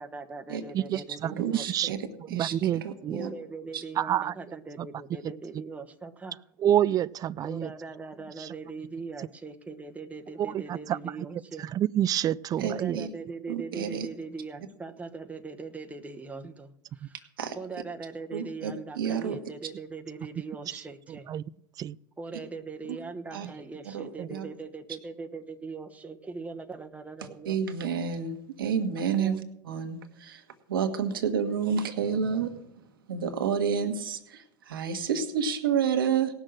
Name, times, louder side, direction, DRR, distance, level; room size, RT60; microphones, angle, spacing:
voice 1, 0.0-2.0 3.1-6.4 7.4-11.7 12.6-17.1 17.5-21.3 22.2-27.9 29.2-29.4, right 4 dB, 10° right, 4 dB, 1.1 m, -40 dB
voice 2, 0.7-1.9 2.3-3.2 4.0-4.3 4.8-4.9 5.2-5.3 6.6-7.7 8.4-8.5 10.4-11.0 11.6-13.0 17.0-17.1 21.1-21.4 21.8-22.0 24.2-24.3, right 11 dB, 35° right, 20 dB, 0.4 m, -28 dB
voice 3, 1.3-3.3 3.7-3.8 12.6-13.1 13.5-14.1 17.4-17.6 18.3-19.4 22.9-23.0 23.3-23.5 23.8-24.5 27.4-29.3 29.6-32.6 33.1-36.3, right 7 dB, 90° right, 7 dB, 1.4 m, -30 dB
17.5 x 6.4 x 6.4 m, 0.80 s
hypercardioid pair, 95°, 11 cm